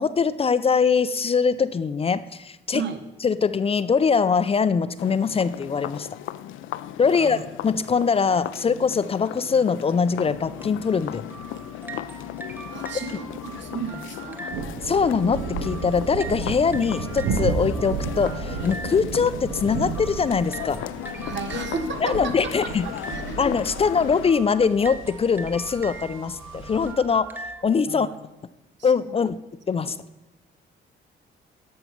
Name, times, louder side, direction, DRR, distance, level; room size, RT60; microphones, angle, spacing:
voice 1, 0.0-2.8 3.2-6.1 7.0-11.2 14.8-20.8 22.0-22.9 23.4-28.1 28.8-29.4 29.7-30.0, left 5 dB, 30° left, 14 dB, 0.4 m, -22 dB
sound 1, 5.0-24.3, left 13 dB, 85° left, 0.5 m, -36 dB
sound 2, 10.3-27.6, right 3 dB, 10° right, 0.8 m, -41 dB
voice 2, 12.7-14.4 21.2-22.5 22.8-23.4 27.9-28.2 28.8-29.3 29.8-30.0, right 6 dB, 65° right, 8 dB, 1.2 m, -34 dB
sound 3, 14.5-26.9, right 5 dB, 85° right, 0.8 m, -33 dB
12.5 x 5.4 x 5.9 m, 1.0 s
cardioid pair, 90°, 20 cm